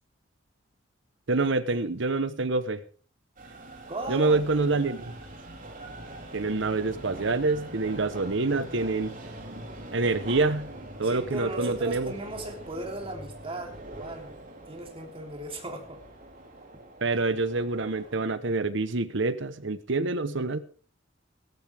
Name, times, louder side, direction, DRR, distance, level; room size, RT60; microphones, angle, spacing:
voice 1, 1.3-2.8 4.1-5.1 6.3-9.2 9.9-10.7 11.0-12.1 17.0-20.6, right 3 dB, 65° right, 13 dB, 1.1 m, -26 dB
sound 1, 3.4-18.2, right 1 dB, 45° right, 3.9 m, -43 dB
voice 2, 3.9-4.9 11.0-14.3 14.7-16.0, right 1 dB, 30° right, 1 dB, 3.6 m, -37 dB
16.5 x 13.5 x 3.6 m, 0.43 s
head